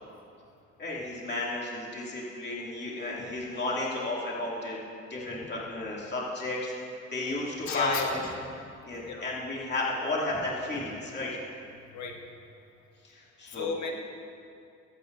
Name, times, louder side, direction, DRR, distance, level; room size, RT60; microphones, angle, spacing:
voice 1, 0.8-6.7 7.1-8.2 8.8-11.4 13.0-13.7, left 2 dB, 35° left, -5 dB, 2.5 m, -33 dB
voice 2, 7.7-8.2 9.0-9.2 11.9-12.2 13.5-13.9, left 5 dB, 65° left, 2 dB, 1.4 m, -32 dB
23.0 x 8.3 x 2.6 m, 2.4 s
cardioid pair, 90°, 30 cm